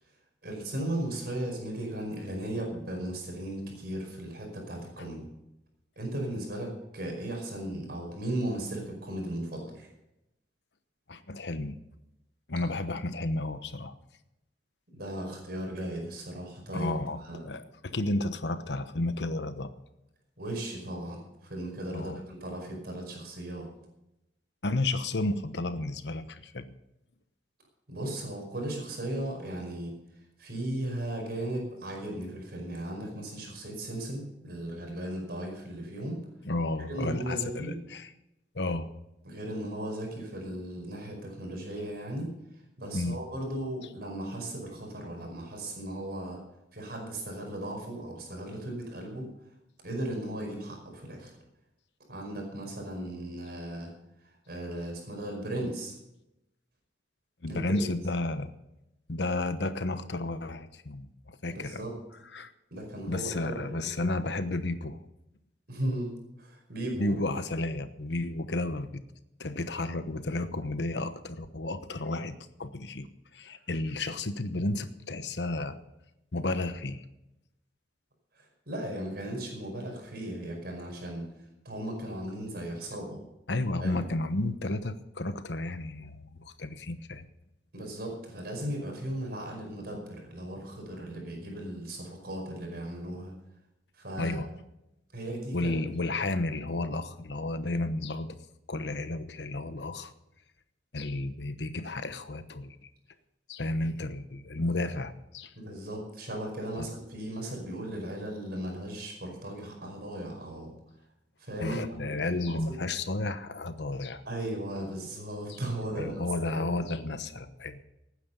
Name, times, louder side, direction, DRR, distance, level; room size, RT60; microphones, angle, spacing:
voice 1, 0.4-5.2 5.9-9.9 14.9-16.9 17.2-17.5 20.4-23.7 27.9-29.9 30.4-36.2 36.9-37.8 39.2-42.3 42.8-46.4 46.7-49.3 49.8-51.3 52.1-53.9 54.5-55.9 57.5-57.9 61.5-61.9 62.7-63.7 64.0-64.1 65.7-66.1 66.4-67.2 78.3-81.3 81.6-83.2 83.8-84.0 87.7-93.3 93.9-94.4 95.1-95.7 105.5-110.7 111.4-112.8 114.2-116.3 116.5-116.9, right 1 dB, 60° right, 1 dB, 5.1 m, -36 dB
voice 2, 11.1-11.8 12.5-13.9 16.7-19.7 21.9-22.2 24.6-26.7 36.4-38.1 38.5-38.9 42.9-43.2 57.4-58.5 59.1-61.8 62.3-62.5 63.1-65.0 67.0-69.0 69.4-75.8 76.3-77.0 83.5-87.3 94.2-94.5 95.5-98.4 98.7-100.1 100.9-102.8 103.5-105.5 106.7-106.9 111.6-114.2 115.5-115.6 116.0-117.8, left 2 dB, 75° left, 10 dB, 1.1 m, -32 dB
18.5 x 9.7 x 5.6 m, 0.88 s
head